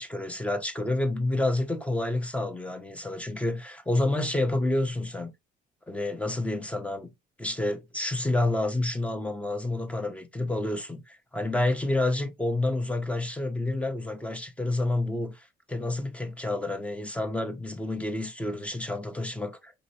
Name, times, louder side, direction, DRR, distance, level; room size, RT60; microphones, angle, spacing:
voice 1, 0.0-5.3 5.9-7.1 7.4-19.7, left 2 dB, 5° left, 0.9 m, -29 dB
5.2 x 3.0 x 2.8 m
cardioid pair, 110°, 17 cm